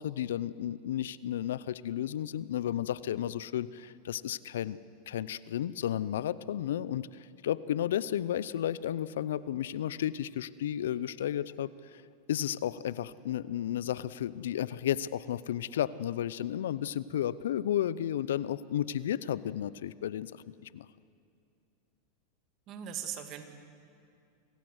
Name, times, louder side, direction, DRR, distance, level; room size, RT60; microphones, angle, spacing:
voice 1, 0.0-4.8 5.1-12.0 12.3-20.9, left 11 dB, 85° left, 18 dB, 0.6 m, -33 dB
voice 2, 22.7-23.4, right 9 dB, 45° right, 7 dB, 2.4 m, -39 dB
26.0 x 16.5 x 8.0 m, 2.5 s
hypercardioid pair, 120°, 0 cm